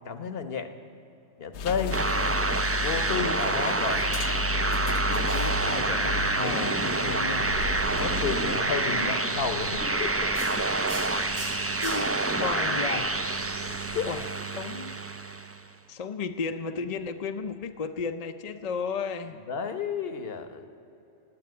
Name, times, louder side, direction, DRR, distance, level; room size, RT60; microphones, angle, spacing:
voice 1, 0.0-0.7 1.4-2.2 2.8-4.0 8.0-10.3 13.6-14.1 19.5-20.7, left 6 dB, 65° left, 9 dB, 1.2 m, -32 dB
sound 1, 1.5-8.4, left 3 dB, 80° left, 0.9 m, -33 dB
sound 2, 1.9-15.6, right 2 dB, 20° right, 0.4 m, -27 dB
voice 2, 5.3-7.6 11.8-13.1 14.0-14.2 14.6-15.0 15.9-19.4, left 5 dB, 45° left, 7 dB, 0.6 m, -34 dB
sound 3, 7.5-14.1, equal, 90° right, 4.6 m, -43 dB
17.5 x 8.6 x 9.5 m, 2.9 s
omnidirectional pair, 1.1 m